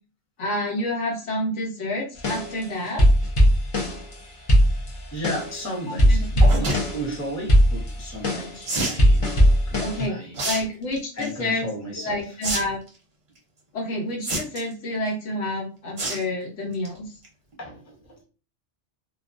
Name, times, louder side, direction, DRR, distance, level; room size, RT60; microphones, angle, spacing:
voice 1, 0.4-3.1 5.9-6.0 6.3-6.6 9.8-10.2 10.4-11.7 12.0-12.8 13.7-17.1, left 1 dB, 75° left, 1.0 m, -28 dB
sound 1, 2.2-4.1 4.5-5.6 5.9-7.1 7.5-10.1, equal, 40° left, 0.5 m, -19 dB
voice 2, 5.1-9.4 9.7-10.4 11.1-12.4 17.6-18.2, equal, 15° left, 0.8 m, -34 dB
sound 2, 6.4-6.8 8.7-9.0 10.3-10.6 11.0-11.3 12.4-12.6 12.9-13.0 14.2-14.7 16.0-16.2 16.6-16.9 17.2-17.3 17.5-17.6, right 2 dB, 40° right, 0.7 m, -27 dB
2.3 x 2.2 x 2.5 m
omnidirectional pair, 1.3 m